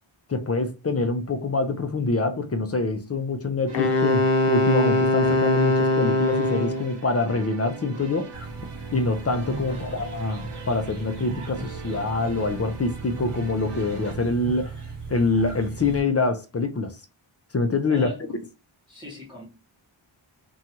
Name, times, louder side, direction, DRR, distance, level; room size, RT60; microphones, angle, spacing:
voice 1, 0.3-8.3 8.9-14.7 15.1-16.9 17.5-18.1, left 3 dB, 30° left, 0.4 m, -25 dB
Wind instrument woodwind instrument, 3.7-6.9, left 2 dB, 90° left, 0.6 m, -21 dB
sound 1, 3.7-14.1, right 3 dB, 60° right, 0.8 m, -41 dB
sound 2, 8.3-16.0, right 4 dB, 90° right, 0.9 m, -37 dB
voice 2, 9.7-10.1 17.9-18.2 18.9-19.5, left 1 dB, 10° right, 1.0 m, -40 dB
2.6 x 2.3 x 2.9 m
wide cardioid pair, 50°, 50 cm